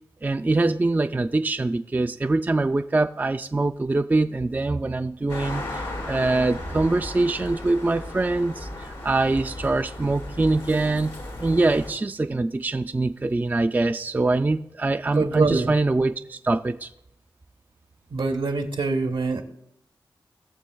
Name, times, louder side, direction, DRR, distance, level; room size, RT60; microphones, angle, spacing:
voice 1, 0.2-11.1 11.4-16.9, right 2 dB, 20° right, 9 dB, 0.3 m, -24 dB
sound 1, 5.3-11.9, left 1 dB, 90° left, 1.6 m, -35 dB
voice 2, 15.2-15.7 18.1-19.4, right 3 dB, 75° right, 5 dB, 1.0 m, -24 dB
18.5 x 6.9 x 2.2 m, 0.79 s
cardioid pair, 50°, 9 cm